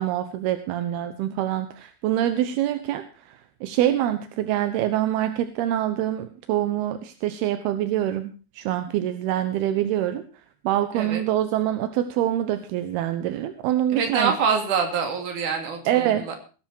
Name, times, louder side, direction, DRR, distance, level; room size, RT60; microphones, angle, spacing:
voice 1, 0.0-10.3 10.6-14.3 15.9-16.3, right 12 dB, 80° right, 9 dB, 2.9 m, -25 dB
voice 2, 13.9-16.4, right 6 dB, 55° right, 4 dB, 4.2 m, -25 dB
18.5 x 11.5 x 4.5 m, 0.36 s
omnidirectional pair, 4.5 m